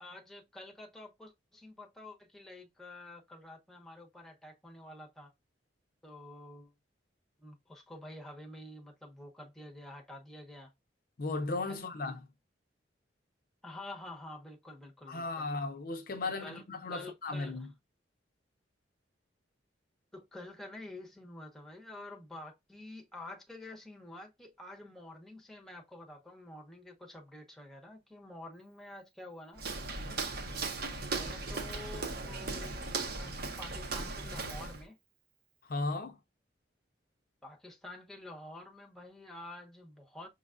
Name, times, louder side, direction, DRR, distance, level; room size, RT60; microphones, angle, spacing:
voice 1, 0.0-5.3 6.0-6.7 7.4-10.7 11.7-11.8 13.6-15.5 16.4-16.6 16.9-17.7 20.1-29.6 29.9-30.2 31.1-35.0 37.4-40.3, left 1 dB, ahead, 0.8 m, -49 dB
voice 2, 11.2-12.3 15.1-17.7 35.6-36.2, left 3 dB, 50° left, 0.5 m, -36 dB
Walk footsteps, 29.6-34.8, right 3 dB, 50° right, 0.7 m, -37 dB
6.1 x 2.3 x 2.4 m
head